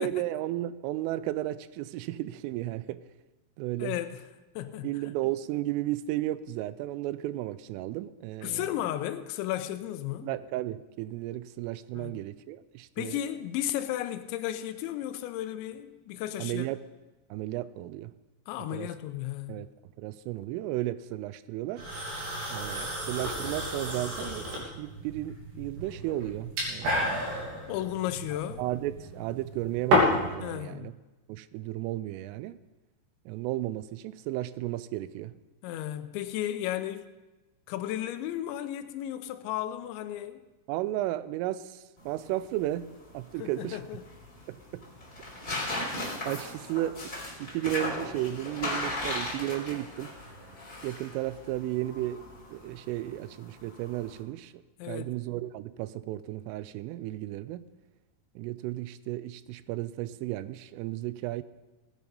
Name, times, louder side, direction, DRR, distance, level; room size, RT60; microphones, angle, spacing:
voice 1, 0.0-3.0 3.6-4.0 4.8-8.6 10.2-13.2 16.4-16.8 17.3-18.1 18.7-18.9 19.5-19.7 20.0-21.8 22.5-27.5 28.6-30.9 31.3-32.6 33.3-35.3 40.7-42.9 43.1-43.8 44.5-44.8 46.3-47.0 47.4-50.2 50.8-52.2 52.5-57.7 58.4-61.4, right 15 dB, 85° right, 15 dB, 3.0 m, -34 dB
voice 2, 3.8-4.2 4.6-4.9 8.4-10.3 11.9-12.2 13.0-16.7 18.5-19.7 27.7-28.6 30.4-30.9 35.6-37.1 37.7-40.4 43.4-44.0 54.8-55.1, left 12 dB, 85° left, 9 dB, 2.7 m, -34 dB
sound 1, 21.8-30.4, equal, 55° right, 4.9 m, -31 dB
sound 2, 42.0-54.2, left 1 dB, 20° left, 3.4 m, -38 dB
19.5 x 9.2 x 5.3 m, 1.1 s
omnidirectional pair, 5.9 m